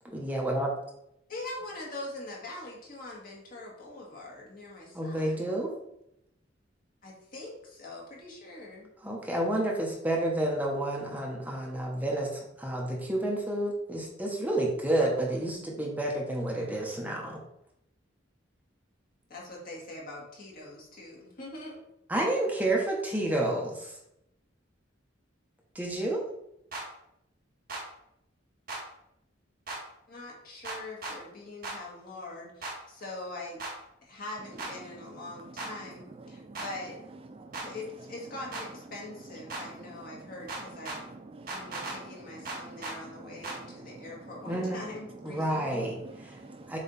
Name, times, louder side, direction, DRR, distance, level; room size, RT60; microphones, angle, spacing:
voice 1, 0.1-0.7 4.9-5.7 9.0-17.4 22.1-24.0 25.7-26.2 44.5-44.8 45.2-46.0 46.7-46.8, right 1 dB, 10° right, -2 dB, 1.1 m, -30 dB
voice 2, 1.3-5.5 7.0-8.9 19.3-21.8 30.1-33.6 34.0-37.0 37.6-41.1 41.4-45.9, left 2 dB, 50° left, -3 dB, 2.1 m, -43 dB
sound 1, 26.7-26.8 27.7-27.8 28.7-28.8 29.7-29.8 30.6-31.2 31.6-31.8 32.6-32.7 33.6-33.7 34.6-34.7 35.6-35.7 36.5-36.7 37.5-37.7 38.5-38.7 39.5-39.6 40.5-41.0 41.5-42.0 42.4-43.0 43.4-43.6, right 2 dB, 50° right, 1.7 m, -36 dB
voice 3, 36.2-36.6 37.3-37.7 39.5-40.3 40.8-44.3 45.5-46.8, right 2 dB, 30° right, 7 dB, 0.4 m, -48 dB
7.2 x 3.3 x 4.2 m, 0.80 s
head